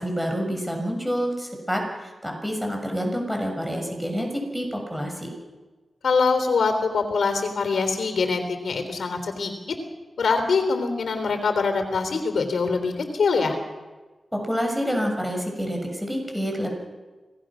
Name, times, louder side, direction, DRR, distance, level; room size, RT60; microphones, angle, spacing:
voice 1, 0.0-5.3 14.3-16.7, equal, ahead, 2 dB, 6.8 m, -28 dB
voice 2, 6.0-9.5 10.2-13.6, left 4 dB, 85° left, 7 dB, 3.5 m, -23 dB
26.5 x 18.5 x 6.3 m, 1.3 s
cardioid pair, 60°, 0 cm